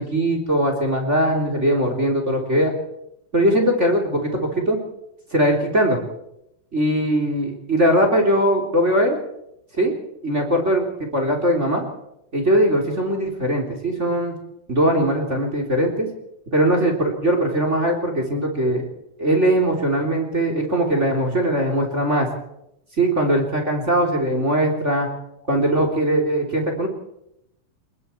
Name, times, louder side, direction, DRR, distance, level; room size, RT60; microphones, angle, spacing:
voice 1, 0.0-2.7 3.3-4.8 5.3-6.0 6.7-9.2 9.8-9.9 10.2-11.8 12.3-14.3 14.7-16.1 16.5-18.9 19.2-22.3 23.0-25.1 25.5-26.9, right 1 dB, 20° right, 3 dB, 3.3 m, -20 dB
29.5 x 20.5 x 4.5 m, 0.82 s
omnidirectional pair, 4.3 m